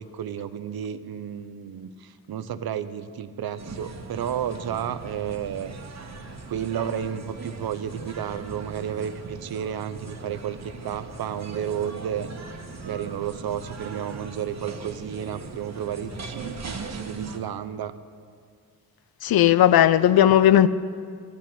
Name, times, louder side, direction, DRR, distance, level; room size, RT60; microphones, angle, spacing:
voice 1, 0.0-6.1 6.5-12.3 12.8-17.9, right 9 dB, 75° right, 0.7 m, -32 dB
sound 1, 3.6-17.4, right 3 dB, 45° right, 1.3 m, -39 dB
voice 2, 19.2-20.7, left 11 dB, 75° left, 0.6 m, -16 dB
12.5 x 8.5 x 9.0 m
wide cardioid pair, 105°, 36 cm